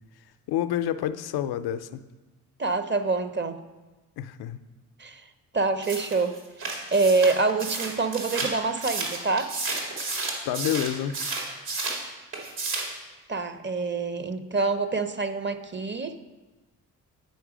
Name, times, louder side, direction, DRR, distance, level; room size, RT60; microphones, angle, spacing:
voice 1, 0.5-2.0 4.2-4.6 10.4-11.2, left 11 dB, 70° left, 11 dB, 0.5 m, -28 dB
voice 2, 2.6-3.6 5.0-5.2 5.5-6.4 6.9-9.5 13.3-16.2, right 3 dB, 30° right, 10 dB, 0.7 m, -26 dB
sound 1, 5.8-12.0 12.3-13.0, right 3 dB, 70° right, 2.2 m, -32 dB
9.4 x 4.6 x 5.0 m, 1.1 s
supercardioid pair, 50°, 39 cm